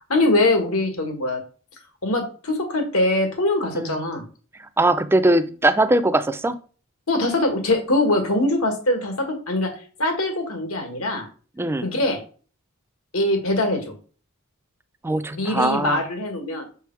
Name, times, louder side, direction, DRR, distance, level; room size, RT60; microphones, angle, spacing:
voice 1, 0.1-1.4 2.0-4.2 7.1-9.7 10.0-11.3 11.8-12.2 13.1-13.9 15.3-16.7, left 2 dB, 80° left, 4 dB, 1.7 m, -22 dB
voice 2, 4.8-6.6 11.6-11.9 15.0-16.0, right 2 dB, 10° right, 12 dB, 0.3 m, -20 dB
6.5 x 3.5 x 4.5 m, 0.40 s
head